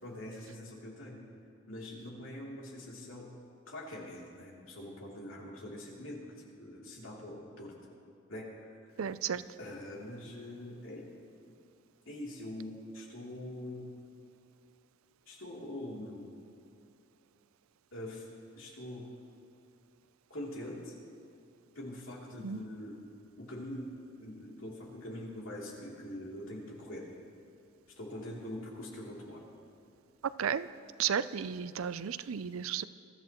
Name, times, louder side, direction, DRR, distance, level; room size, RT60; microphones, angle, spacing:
voice 1, 0.0-1.2 1.7-3.3 3.7-7.7 8.3-8.8 9.6-11.1 12.0-13.9 15.3-16.3 17.9-18.3 18.5-19.1 20.3-20.9 21.7-23.0 23.4-23.9 24.2-27.1 28.0-29.4, left 1 dB, 70° left, -3 dB, 3.1 m, -43 dB
voice 2, 9.0-9.4 22.4-22.6 30.2-30.7 31.0-32.8, right 8 dB, 90° right, 15 dB, 0.5 m, -33 dB
22.5 x 13.5 x 3.0 m, 2.6 s
head